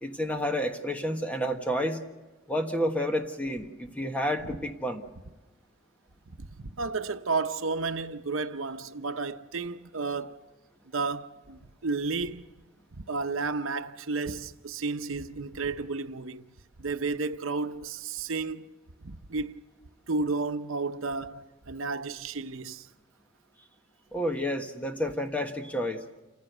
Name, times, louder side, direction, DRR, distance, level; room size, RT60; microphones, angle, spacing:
voice 1, 0.0-2.0 2.5-5.0 24.1-26.0, equal, 5° left, 1.3 m, -30 dB
voice 2, 6.4-10.4 10.9-12.5 13.0-16.5 16.8-18.7 19.0-19.6 20.1-22.9, right 4 dB, 85° right, 0.8 m, -32 dB
28.5 x 15.0 x 6.7 m
head